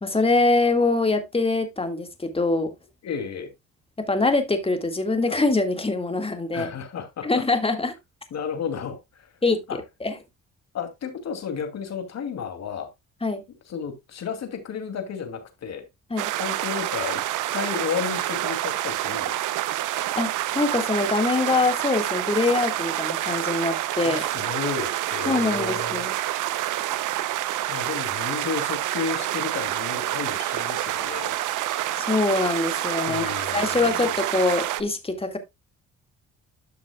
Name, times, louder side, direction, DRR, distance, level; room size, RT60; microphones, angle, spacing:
voice 1, 0.0-2.7 4.0-6.7 7.2-8.0 9.4-10.2 13.2-13.4 16.1-16.3 20.2-24.3 25.3-26.1 32.0-35.4, left 3 dB, 20° left, 1.9 m, -24 dB
voice 2, 3.0-3.5 6.5-7.4 8.3-9.3 9.7-9.8 10.7-12.9 13.7-15.8 16.4-17.2 17.5-19.4 24.0-26.1 27.7-31.4 33.1-34.1, left 6 dB, 60° left, 2.6 m, -32 dB
sound 1, 16.2-34.8, right 14 dB, 85° right, 0.8 m, -28 dB
12.5 x 6.1 x 2.3 m
cardioid pair, 90°, 30 cm